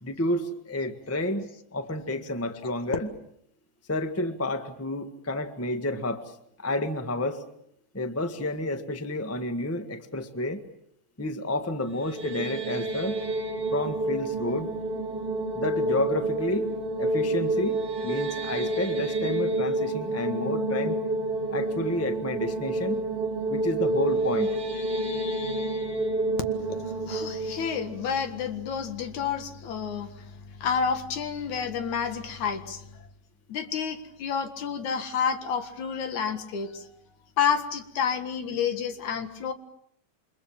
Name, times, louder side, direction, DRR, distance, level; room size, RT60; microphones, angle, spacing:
voice 1, 0.0-3.2 3.9-7.4 7.9-10.6 11.2-13.2 13.7-14.7 15.5-16.7 17.0-21.0 21.5-23.0 23.5-24.6, left 1 dB, 10° left, 8 dB, 0.6 m, -30 dB
sound 1, 11.9-29.0, right 2 dB, 35° right, 4.2 m, -29 dB
voice 2, 26.5-33.0 33.5-36.9 37.4-39.5, left 7 dB, 65° left, 9 dB, 3.1 m, -30 dB
28.5 x 25.5 x 7.4 m, 0.71 s
omnidirectional pair, 3.7 m